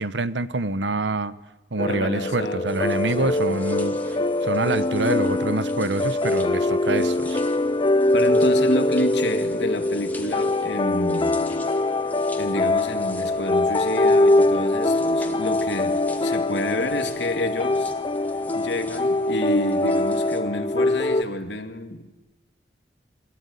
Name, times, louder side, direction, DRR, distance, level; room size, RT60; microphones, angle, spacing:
voice 1, 0.0-1.3 1.7-7.4, right 2 dB, 90° right, 15 dB, 1.1 m, -26 dB
voice 2, 1.8-3.3 8.1-11.5 12.4-17.9 18.5-22.2, left 1 dB, 80° left, 7 dB, 2.4 m, -29 dB
sound 1, 1.8-21.2, left 2 dB, 25° left, 0.7 m, -23 dB
sound 2, 2.7-20.4, left 2 dB, 10° left, 2.4 m, -44 dB
27.5 x 13.5 x 9.8 m, 1.1 s
head